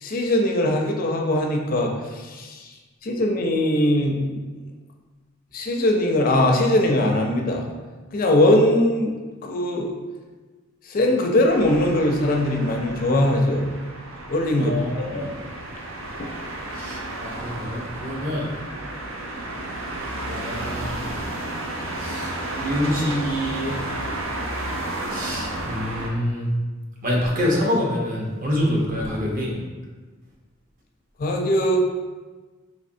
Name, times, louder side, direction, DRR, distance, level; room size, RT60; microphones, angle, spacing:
voice 1, 0.0-2.7 3.0-4.4 5.5-7.7 8.1-9.1 9.4-9.9 10.9-13.7 14.3-14.7 15.1-15.3 16.2-16.4 31.2-31.8, left 1 dB, 45° left, 2 dB, 0.4 m, -21 dB
sound 1, 11.5-26.1, right 1 dB, 85° right, 0.6 m, -32 dB
voice 2, 14.6-15.5 16.7-18.5 20.2-20.9 21.9-23.8 25.1-26.5 27.0-29.6, left 1 dB, 45° right, -3 dB, 0.8 m, -26 dB
4.1 x 3.0 x 2.6 m, 1.3 s
head